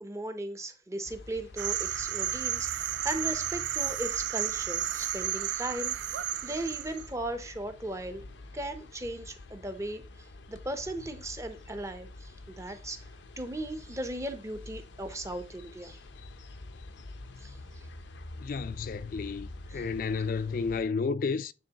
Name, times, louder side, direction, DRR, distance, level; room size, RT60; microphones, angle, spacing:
voice 1, 0.0-8.2 8.5-10.0 10.5-12.3 12.6-13.0 13.4-16.0 17.4-17.6 19.7-19.8, right 1 dB, 15° right, 0.6 m, -37 dB
sound 1, 1.0-20.8, left 2 dB, 90° left, 0.6 m, -47 dB
sound 2, 1.6-7.1, right 11 dB, 75° right, 0.3 m, -32 dB
voice 2, 18.4-21.5, left 5 dB, 50° left, 0.3 m, -31 dB
9.2 x 3.7 x 2.8 m
head